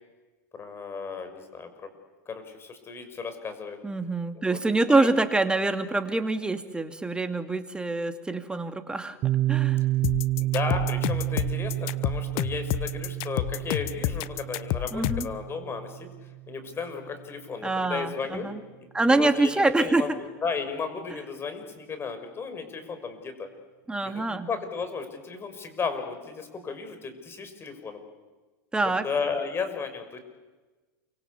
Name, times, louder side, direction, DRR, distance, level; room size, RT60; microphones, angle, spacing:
voice 1, 0.5-1.9 2.3-3.8 4.3-4.6 4.9-5.1 10.4-16.1 16.5-18.5 19.1-23.5 24.0-28.0 29.0-30.2, left 5 dB, 25° left, 8 dB, 5.9 m, -34 dB
voice 2, 3.8-9.2 9.5-9.8 14.9-15.3 17.6-18.6 18.9-20.2 21.1-21.2 23.9-24.5 28.7-29.0, right 2 dB, 10° right, 8 dB, 2.3 m, -25 dB
Piano, 9.2-16.7, right 16 dB, 40° right, 0.8 m, -29 dB
sound 1, 10.0-15.3, left 16 dB, 60° left, 1.0 m, -29 dB
28.5 x 24.5 x 8.5 m, 1.2 s
hypercardioid pair, 110°, 10 cm